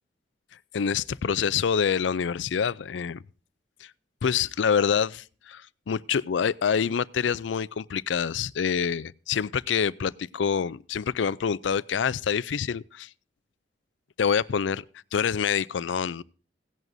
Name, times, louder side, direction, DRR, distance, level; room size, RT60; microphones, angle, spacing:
voice 1, 0.7-3.2 4.2-13.1 14.2-14.8 15.1-16.2, left 7 dB, 80° left, 0.4 m, -26 dB
17.0 x 11.0 x 2.7 m
head